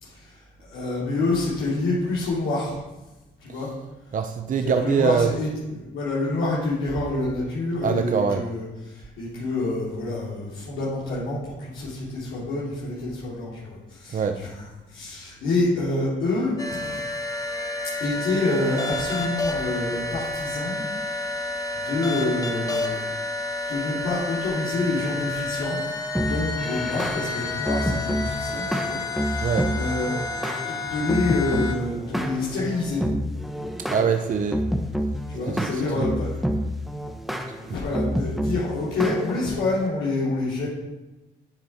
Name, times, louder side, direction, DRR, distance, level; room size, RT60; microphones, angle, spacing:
voice 1, 0.0-2.8 3.4-3.7 4.6-5.5 5.8-14.6 14.9-17.0 18.0-23.0 23.7-25.8 26.1-30.2 30.6-33.0 35.3-36.4 37.6-40.7, left 2 dB, 85° left, -8 dB, 3.3 m, -27 dB
voice 2, 4.1-5.3 7.8-8.4 14.1-14.4 29.4-29.7 33.9-34.6 35.5-36.1, right 6 dB, 40° right, 6 dB, 0.6 m, -23 dB
sound 1, 16.6-31.7, left 2 dB, 20° left, 1.2 m, -30 dB
sound 2, 26.1-39.9, equal, ahead, 1.1 m, -29 dB
9.9 x 7.4 x 4.4 m, 1.1 s
cardioid pair, 90°, 20 cm